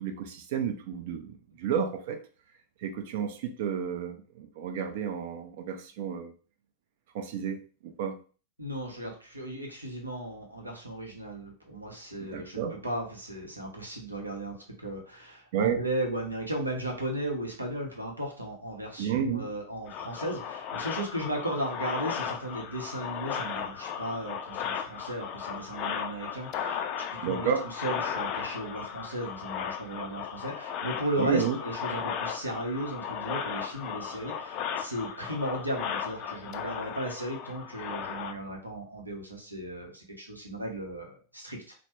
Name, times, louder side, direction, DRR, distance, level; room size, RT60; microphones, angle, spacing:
voice 1, 0.0-2.2 2.8-6.3 7.1-7.6 7.8-8.2 12.2-12.7 15.5-15.8 19.0-19.5 27.2-27.6 31.2-31.6, right 7 dB, 50° right, 7 dB, 0.5 m, -31 dB
voice 2, 8.6-27.5 27.8-41.7, right 1 dB, 85° right, 1 dB, 0.8 m, -36 dB
sound 1, 19.9-38.3, left 8 dB, 40° left, 0.3 m, -36 dB
3.0 x 2.0 x 2.9 m, 0.37 s
figure-of-eight pair, 90°, 0 cm